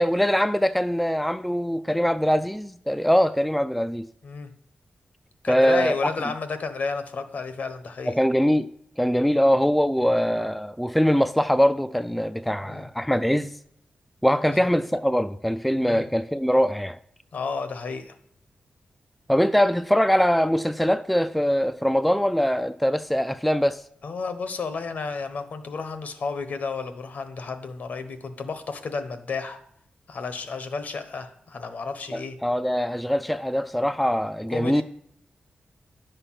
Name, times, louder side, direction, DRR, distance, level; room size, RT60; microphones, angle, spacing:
voice 1, 0.0-4.1 5.5-6.0 8.1-8.7 9.0-13.5 14.2-17.0 19.3-23.8 32.1-34.8, equal, ahead, 0.3 m, -22 dB
voice 2, 5.4-8.1 12.6-12.9 14.5-14.6 15.7-16.1 17.3-18.1 24.0-29.6 30.1-32.4 34.5-34.8, left 4 dB, 65° left, 1.1 m, -32 dB
10.5 x 6.8 x 5.8 m
wide cardioid pair, 145°, 3 cm